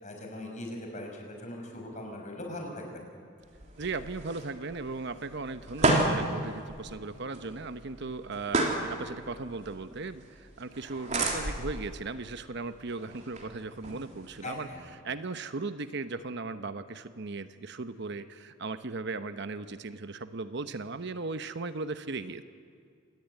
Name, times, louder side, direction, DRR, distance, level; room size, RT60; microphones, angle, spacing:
voice 1, 0.0-3.1 14.4-14.9, left 1 dB, 40° left, 2 dB, 6.0 m, -40 dB
sound 1, 3.4-14.8, right 2 dB, 40° right, 3.6 m, -33 dB
voice 2, 3.8-14.7 15.0-22.4, right 3 dB, 60° right, 10 dB, 1.0 m, -37 dB
26.5 x 19.0 x 9.5 m, 2.2 s
head